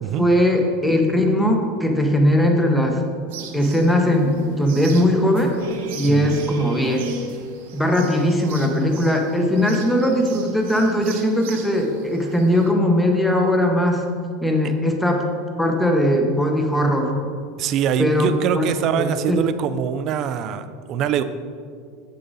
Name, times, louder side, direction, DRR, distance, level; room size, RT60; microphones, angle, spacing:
voice 1, 0.2-3.0 3.5-4.3 4.6-5.5 5.9-7.0 7.7-14.0 14.4-15.2 15.6-17.1 18.0-18.7 19.0-19.4, left 1 dB, 5° left, 2 dB, 1.0 m, -19 dB
sound 1, 3.3-12.7, right 3 dB, 80° right, 1.0 m, -36 dB
voice 2, 6.0-6.4 17.6-21.2, right 8 dB, 45° right, 11 dB, 0.4 m, -23 dB
7.6 x 6.7 x 4.1 m, 2.1 s
supercardioid pair, 135°, 0 cm